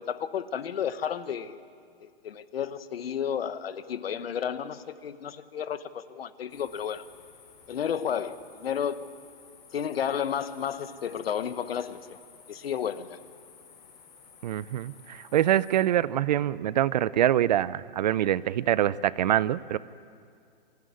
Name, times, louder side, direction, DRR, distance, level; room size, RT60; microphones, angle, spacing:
voice 1, 0.0-1.6 2.0-7.0 7.7-9.0 9.7-12.2 12.5-13.2, left 8 dB, 75° left, 1.2 m, -32 dB
sound 1, 6.5-15.8, left 6 dB, 50° left, 5.5 m, -54 dB
voice 2, 14.4-19.8, right 12 dB, 45° right, 0.5 m, -25 dB
25.5 x 15.0 x 9.5 m
hypercardioid pair, 155°, 30 cm